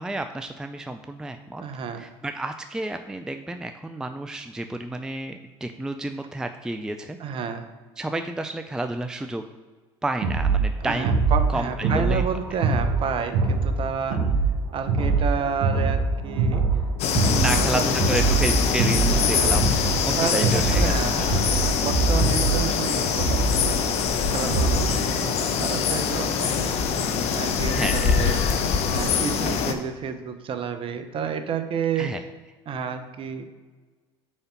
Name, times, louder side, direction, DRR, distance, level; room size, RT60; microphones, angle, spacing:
voice 1, 0.0-1.6 2.0-7.2 8.0-9.4 10.0-11.2 11.5-12.2 14.1-14.3 17.3-21.3 24.9-25.1 27.7-28.1 32.0-32.2, right 2 dB, 5° right, 7 dB, 0.4 m, -31 dB
voice 2, 1.6-2.1 7.2-7.7 10.8-14.4 14.7-16.7 17.4-18.3 19.1-19.8 20.2-27.1 27.3-28.4 28.9-32.1 32.7-33.5, right 7 dB, 40° right, 8 dB, 0.8 m, -31 dB
sound 1, 10.2-25.0, right 3 dB, 70° right, 1.2 m, -24 dB
sound 2, 17.0-29.7, left 6 dB, 50° left, 0.8 m, -24 dB
5.0 x 4.3 x 5.9 m, 1.3 s
hypercardioid pair, 75°, 13 cm